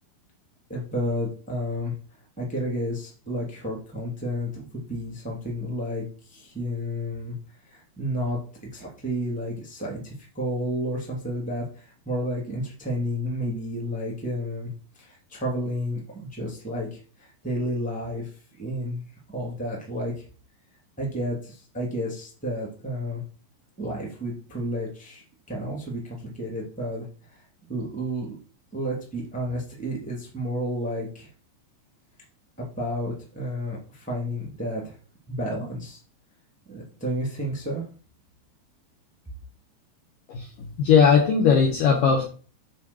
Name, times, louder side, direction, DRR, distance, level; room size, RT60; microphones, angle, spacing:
voice 1, 0.7-1.9 2.4-7.3 7.7-8.4 8.7-14.7 15.0-18.3 18.6-20.1 21.0-23.2 23.8-27.1 27.7-28.3 28.7-31.3 32.6-34.9 35.3-36.0 36.7-37.8, equal, ahead, -2 dB, 1.9 m, -31 dB
voice 2, 40.8-42.2, left 6 dB, 65° left, 1 dB, 2.3 m, -18 dB
9.2 x 4.5 x 6.3 m, 0.39 s
omnidirectional pair, 5.3 m